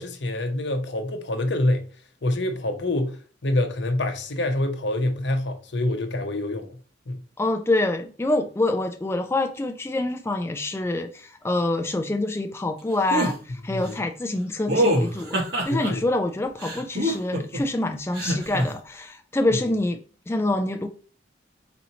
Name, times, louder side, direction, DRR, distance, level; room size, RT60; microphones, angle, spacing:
voice 1, 0.0-1.8 2.2-6.8 7.1-7.2 13.7-13.9 15.7-16.0, left 1 dB, 70° left, 0.8 m, -26 dB
voice 2, 7.4-13.4 13.6-15.4 15.6-20.0 20.3-20.9, left 2 dB, 15° left, 0.4 m, -26 dB
sound 1, 13.1-13.3 14.7-15.9 16.6-17.6 18.1-18.6, right 1 dB, 60° right, 1.8 m, -24 dB
4.3 x 4.0 x 2.8 m
head